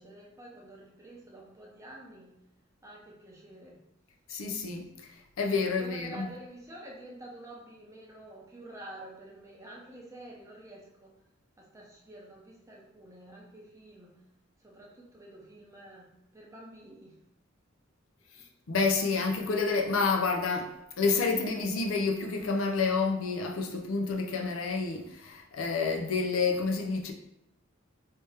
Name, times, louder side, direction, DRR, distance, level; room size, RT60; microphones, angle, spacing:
voice 1, 0.0-2.4 2.8-3.8 5.8-11.1 11.6-14.1 14.6-17.2 18.3-18.5, right 1 dB, 15° right, 0.7 m, -48 dB
voice 2, 4.3-4.9 5.4-6.3 18.7-20.7 21.0-27.1, left 4 dB, 80° left, 0.5 m, -29 dB
3.3 x 2.8 x 3.3 m
head